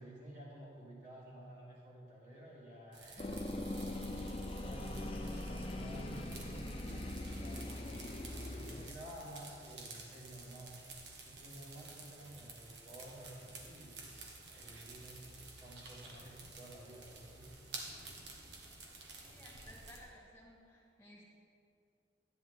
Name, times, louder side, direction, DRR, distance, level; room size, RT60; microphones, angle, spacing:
voice 1, 0.0-4.0 4.6-10.8 11.2-17.6, right 1 dB, 45° right, -7 dB, 3.0 m, -52 dB
sound 1, 2.9-20.0, right 3 dB, 80° right, 1.5 m, -52 dB
sound 2, 3.2-8.9, left 1 dB, 30° left, 0.6 m, -41 dB
voice 2, 19.1-21.3, equal, 15° left, -4 dB, 2.4 m, -57 dB
13.5 x 9.5 x 3.7 m, 2.4 s
head